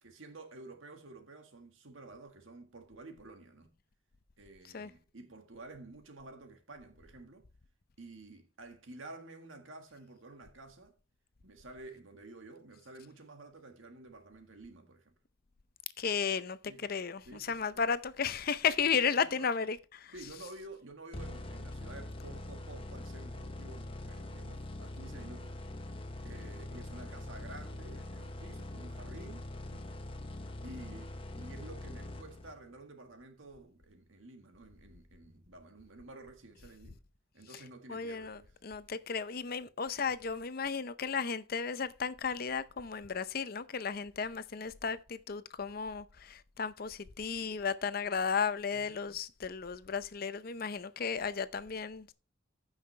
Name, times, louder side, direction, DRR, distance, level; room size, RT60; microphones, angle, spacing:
voice 1, 0.0-3.7 4.4-7.5 8.0-11.0 11.4-15.2 16.7-16.8 17.2-17.8 18.8-19.5 20.1-25.5 26.2-29.8 30.6-37.0 37.3-38.5 39.6-39.7 48.7-49.2, right 2 dB, 80° right, 1.7 m, -51 dB
voice 2, 16.0-16.6 16.9-17.2 17.5-20.1 37.9-52.1, left 6 dB, 50° left, 0.6 m, -34 dB
sound 1, 21.1-32.8, left 1 dB, 25° left, 1.0 m, -43 dB
15.0 x 5.8 x 3.3 m
head